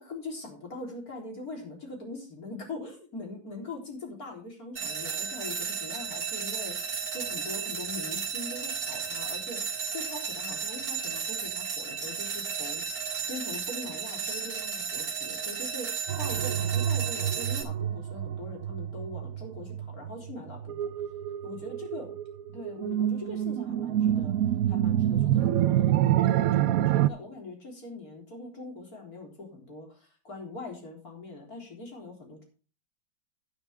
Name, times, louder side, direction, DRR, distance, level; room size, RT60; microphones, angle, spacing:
voice 1, 0.0-12.8 13.2-20.9 21.4-22.1 22.5-24.3 24.7-26.6 26.9-32.4, left 2 dB, 45° left, 1 dB, 4.2 m, -42 dB
sound 1, 4.8-17.6, right 6 dB, 50° right, 2.2 m, -34 dB
sound 2, 16.1-27.1, right 11 dB, 80° right, 0.7 m, -27 dB
11.5 x 10.5 x 3.6 m, 0.37 s
omnidirectional pair, 2.2 m